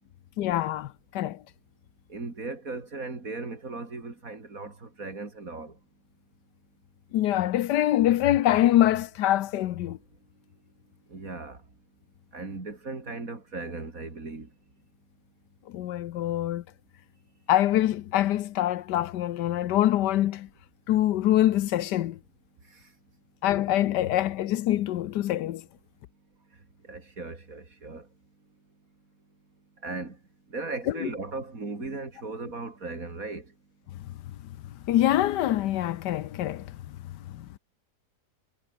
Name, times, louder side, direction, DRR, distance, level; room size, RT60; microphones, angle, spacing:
voice 1, 0.4-1.4 7.1-10.0 15.7-16.6 17.5-20.5 20.9-22.2 23.4-25.6 30.9-31.1 34.9-37.5, left 13 dB, 80° left, 1.3 m, -25 dB
voice 2, 2.1-5.7 11.1-11.6 12.3-14.5 26.9-28.0 29.8-30.2 30.5-33.4, right 3 dB, 50° right, 4.0 m, -37 dB
omnidirectional pair, 1.8 m